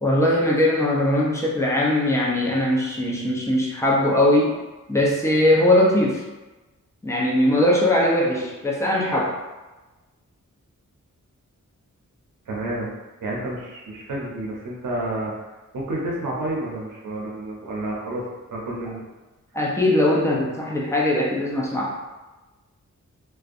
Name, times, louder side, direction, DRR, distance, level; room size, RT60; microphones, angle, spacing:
voice 1, 0.0-4.6 4.9-6.2 7.0-9.3 19.5-21.9, left 1 dB, 10° left, -4 dB, 0.5 m, -20 dB
voice 2, 12.5-12.9 13.2-15.3 15.7-19.0, right 1 dB, 85° right, -4 dB, 0.6 m, -30 dB
2.5 x 2.2 x 2.5 m, 1.1 s
wide cardioid pair, 110°, 31 cm